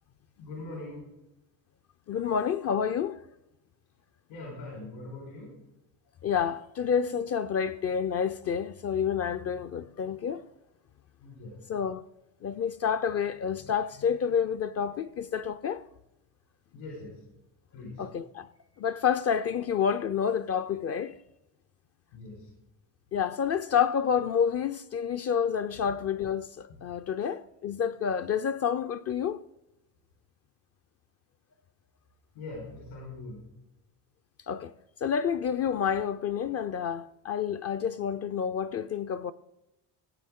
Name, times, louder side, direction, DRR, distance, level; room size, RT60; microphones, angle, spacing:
voice 1, 0.4-1.1 4.3-5.6 11.2-11.5 16.7-17.3 17.7-18.1 22.1-22.5 32.3-33.4, left 2 dB, 80° left, 4.4 m, -42 dB
voice 2, 2.1-3.2 6.2-10.4 11.7-12.0 12.4-15.8 18.0-18.5 18.8-21.2 23.1-29.4 34.5-34.7 35.0-39.3, left 7 dB, 35° left, 0.4 m, -29 dB
16.5 x 8.5 x 3.6 m
supercardioid pair, 95°, 43 cm